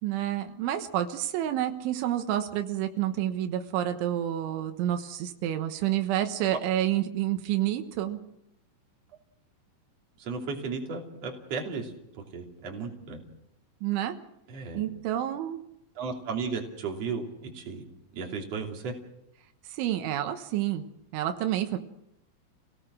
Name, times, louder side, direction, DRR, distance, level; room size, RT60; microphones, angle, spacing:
voice 1, 0.0-8.2 13.8-14.2 14.7-15.6 19.7-20.9 21.1-21.8, right 12 dB, 85° right, 7 dB, 3.6 m, -29 dB
voice 2, 10.2-13.2 14.5-14.8 15.9-17.8 18.1-18.9, right 4 dB, 40° right, 1 dB, 3.5 m, -35 dB
27.5 x 18.0 x 6.3 m, 0.81 s
omnidirectional pair, 5.3 m